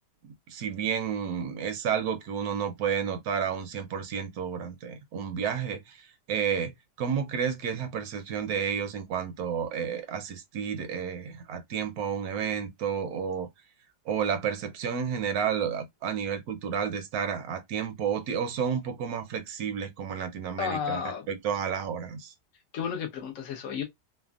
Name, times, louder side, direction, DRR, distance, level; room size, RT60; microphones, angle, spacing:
voice 1, 0.5-6.7 7.0-13.5 14.1-21.0 21.3-22.3, right 7 dB, 70° right, 1.0 m, -31 dB
voice 2, 20.6-21.3 22.7-23.8, left 7 dB, 65° left, 0.8 m, -32 dB
3.3 x 2.1 x 2.3 m
omnidirectional pair, 1.9 m